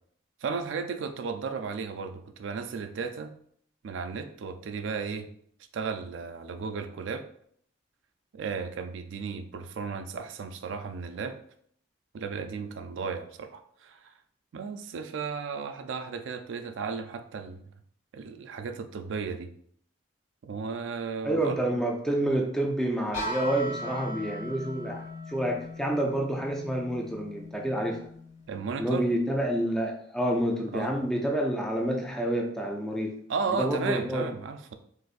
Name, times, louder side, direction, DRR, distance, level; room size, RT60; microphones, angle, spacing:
voice 1, 0.4-3.3 3.8-5.3 5.7-7.2 8.3-11.4 12.1-14.1 14.5-17.7 18.1-19.5 20.4-21.6 28.5-29.0 30.7-30.9 33.3-34.7, right 5 dB, 70° right, 8 dB, 0.3 m, -34 dB
voice 2, 21.2-28.1 28.8-33.1 33.5-34.3, right 1 dB, 5° left, 0 dB, 0.4 m, -28 dB
sound 1, 23.1-28.9, left 1 dB, 70° left, 1.2 m, -39 dB
3.9 x 2.6 x 2.4 m, 0.64 s
head